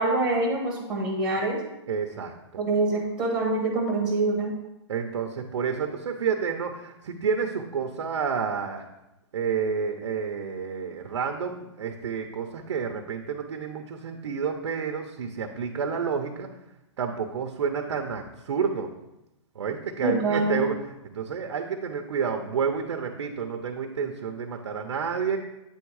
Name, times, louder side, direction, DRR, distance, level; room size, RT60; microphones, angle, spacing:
voice 1, 0.0-1.6 2.6-4.5 20.0-20.6, right 2 dB, 5° right, -1 dB, 1.3 m, -25 dB
voice 2, 1.9-2.3 4.9-8.8 9.3-16.5 17.0-18.9 19.5-20.8 21.0-25.4, right 6 dB, 80° right, 4 dB, 0.7 m, -29 dB
8.5 x 3.6 x 4.7 m, 0.93 s
hypercardioid pair, 160°, 15 cm